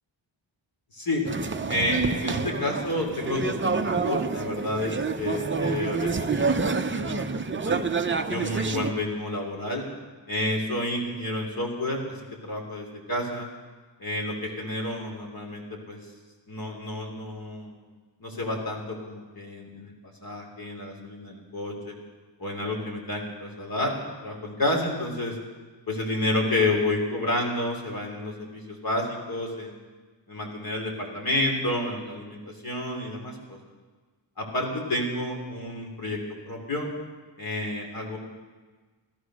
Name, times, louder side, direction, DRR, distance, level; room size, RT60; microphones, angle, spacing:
voice 1, 0.9-1.3 1.7-7.8 8.3-9.8 10.3-12.0 12.4-13.5 14.0-16.0 16.5-17.8 18.2-19.9 20.2-21.9 22.4-23.9 24.2-25.4 25.9-29.8 30.3-33.6 34.4-36.2 36.5-36.9 37.4-38.2, left 1 dB, 50° left, 0 dB, 3.6 m, -30 dB
sound 1, 1.2-8.9, right 4 dB, 25° right, 0.6 m, -28 dB
16.5 x 13.5 x 6.4 m, 1.3 s
wide cardioid pair, 150°, 46 cm